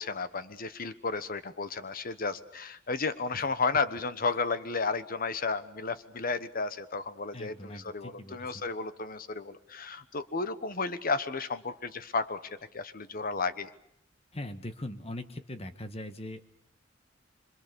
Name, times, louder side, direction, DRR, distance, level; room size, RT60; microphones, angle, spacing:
voice 1, 0.0-13.7, left 4 dB, 50° left, 12 dB, 1.2 m, -33 dB
voice 2, 7.3-8.6 14.3-16.4, left 1 dB, 30° left, 9 dB, 1.5 m, -41 dB
25.5 x 25.5 x 6.9 m, 0.75 s
head